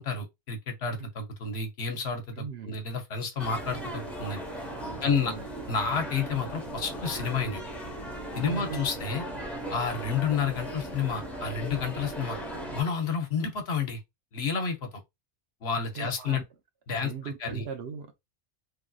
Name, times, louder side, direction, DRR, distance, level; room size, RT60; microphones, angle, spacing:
voice 1, 0.0-4.4 5.0-5.3 5.7-7.6 8.3-9.2 9.7-12.4 12.7-14.0 14.3-15.0 15.6-16.4 16.9-17.6, left 5 dB, 70° left, 1.1 m, -30 dB
voice 2, 2.3-2.8 4.8-5.4 8.3-8.8 15.8-16.4 16.9-18.1, right 6 dB, 70° right, 0.9 m, -39 dB
sound 1, 3.4-12.8, right 1 dB, ahead, 0.8 m, -37 dB
3.3 x 2.6 x 2.3 m
omnidirectional pair, 1.1 m